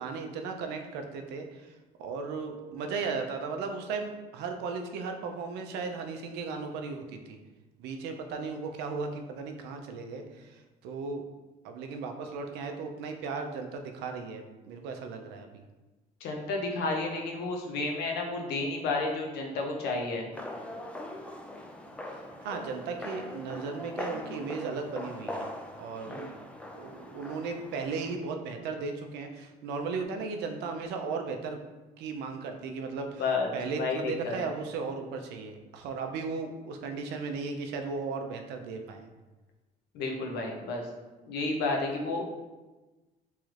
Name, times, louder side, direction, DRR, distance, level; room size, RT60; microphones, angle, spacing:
voice 1, 0.0-7.4 7.8-11.2 11.6-15.6 22.1-25.5 25.8-26.3 26.7-31.6 32.0-33.2 33.5-39.1, right 4 dB, 90° right, 5 dB, 0.4 m, -36 dB
voice 2, 16.2-20.3 26.1-26.3 33.2-33.5 33.8-34.5 39.9-40.9 41.3-42.3, left 3 dB, 80° left, 1 dB, 0.6 m, -31 dB
sound 1, 20.3-28.2, left 1 dB, 5° left, 0.3 m, -41 dB
3.1 x 3.1 x 2.4 m, 1.2 s
cardioid pair, 110°, 17 cm